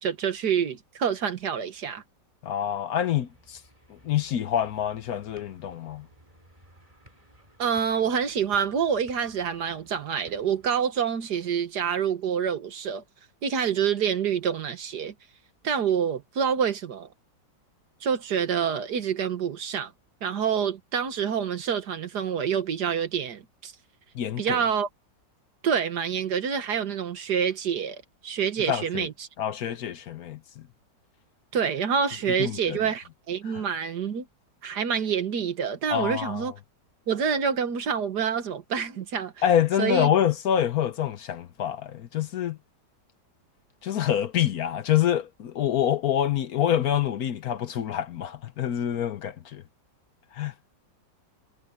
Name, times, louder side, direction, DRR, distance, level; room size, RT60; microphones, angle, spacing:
voice 1, 0.0-2.0 7.6-13.0 13.4-15.1 15.6-17.1 18.0-19.9 20.2-23.7 24.4-24.9 25.6-29.3 31.5-34.3 34.6-36.5 37.1-39.3 39.8-40.1, right 7 dB, 65° right, 1.9 m, -27 dB
voice 2, 2.4-3.6 3.9-6.0 24.1-24.6 28.7-29.1 29.4-30.6 32.4-32.8 33.5-33.6 35.9-36.5 39.4-42.6 43.8-49.6 50.3-50.5, left 10 dB, 65° left, 1.2 m, -26 dB
sound 1, 3.1-10.7, equal, 20° right, 7.4 m, -57 dB
omnidirectional pair, 1.9 m